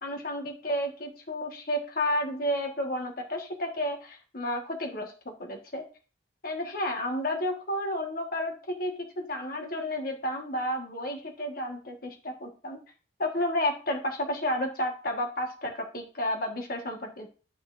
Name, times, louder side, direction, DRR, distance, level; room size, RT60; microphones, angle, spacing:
voice 1, 0.0-5.9 6.4-12.8 13.2-17.3, left 1 dB, 55° left, 3 dB, 1.5 m, -31 dB
8.4 x 7.0 x 2.6 m, 0.36 s
head